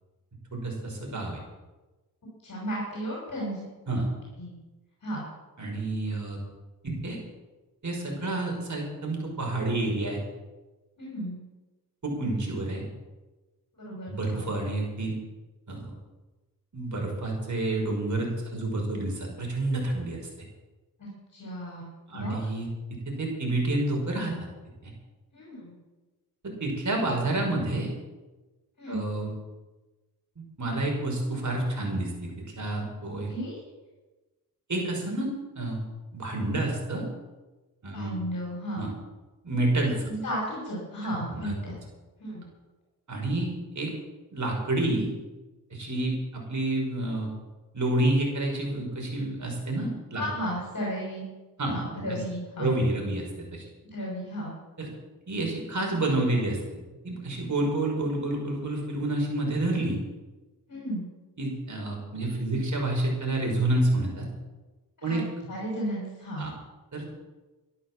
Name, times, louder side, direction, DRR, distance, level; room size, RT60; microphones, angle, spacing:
voice 1, 0.5-1.4 3.9-4.1 5.6-6.4 6.8-7.2 7.8-10.2 12.0-12.8 14.1-15.1 15.7-15.9 16.7-20.2 22.1-24.3 24.8-24.9 26.4-27.9 28.9-29.3 30.4-32.3 32.6-33.3 34.7-35.8 36.1-37.1 37.8-38.2 38.8-38.9 39.4-40.1 41.3-41.5 43.1-43.9 44.3-45.1 45.7-47.3 47.7-50.2 51.6-51.7 52.6-53.6 54.8-54.9 55.3-56.8 57.0-60.0 61.4-64.3 65.0-65.2 66.4-66.5 66.9-67.1, right 2 dB, 50° right, 0 dB, 5.7 m, -29 dB
voice 2, 2.4-3.7 3.9-4.0 4.4-4.5 5.0-5.2 11.0-11.4 13.8-14.5 21.0-22.4 25.3-25.7 28.8-29.0 33.3-33.6 37.9-38.9 40.1-41.8 42.2-42.4 50.2-51.2 51.6-52.7 53.9-54.5 60.7-61.1 65.0-65.2 65.5-66.5, equal, 50° left, -4 dB, 6.4 m, -34 dB
13.5 x 11.5 x 7.6 m, 1.2 s
cardioid pair, 75°, 38 cm